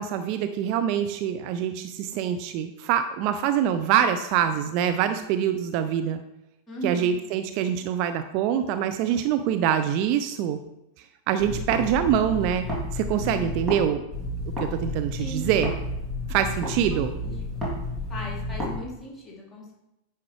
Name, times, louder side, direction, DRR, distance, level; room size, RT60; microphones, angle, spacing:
voice 1, 0.0-6.2 6.8-10.6 11.3-12.6 12.9-14.0 14.7-15.7 16.3-17.1, right 9 dB, 45° right, 9 dB, 0.4 m, -25 dB
voice 2, 6.7-7.1 13.1-13.5 15.2-15.6 16.2-16.4 16.9-17.6 18.1-19.7, equal, 15° left, -4 dB, 2.8 m, -38 dB
sound 1, 11.4-13.8 14.1-18.8, left 1 dB, 5° right, 2.7 m, -31 dB
9.6 x 5.7 x 3.2 m, 0.89 s
figure-of-eight pair, 90°, 0 cm